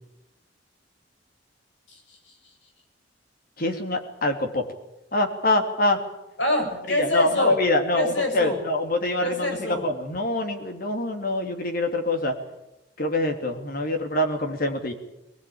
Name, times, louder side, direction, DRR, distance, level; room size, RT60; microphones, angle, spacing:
voice 1, 1.9-2.3 6.4-7.5 7.9-8.6 9.2-9.8, left 1 dB, 90° left, 3 dB, 7.4 m, -26 dB
voice 2, 3.6-4.6 5.1-6.0 6.9-12.3 13.0-14.9, left 1 dB, 55° left, 5 dB, 3.1 m, -25 dB
21.0 x 20.0 x 8.8 m, 0.90 s
head